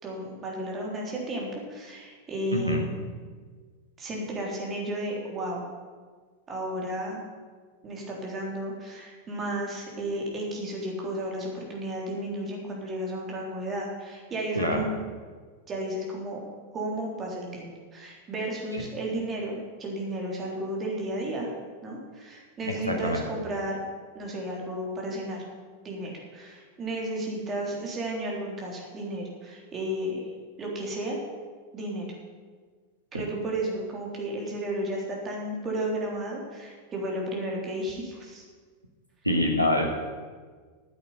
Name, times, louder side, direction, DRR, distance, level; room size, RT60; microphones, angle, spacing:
voice 1, 0.0-2.9 4.0-5.6 6.5-7.2 7.8-14.9 15.7-16.4 16.7-21.5 21.8-23.8 24.1-25.4 25.8-30.3 30.6-31.2 31.7-32.1 33.1-38.4, right 1 dB, 25° right, -1 dB, 3.6 m, -33 dB
voice 2, 2.5-2.9 14.5-14.8 22.8-23.2 39.2-39.9, left 1 dB, 90° right, 1 dB, 1.7 m, -25 dB
10.0 x 8.6 x 9.0 m, 1.5 s
figure-of-eight pair, 90°, 0 cm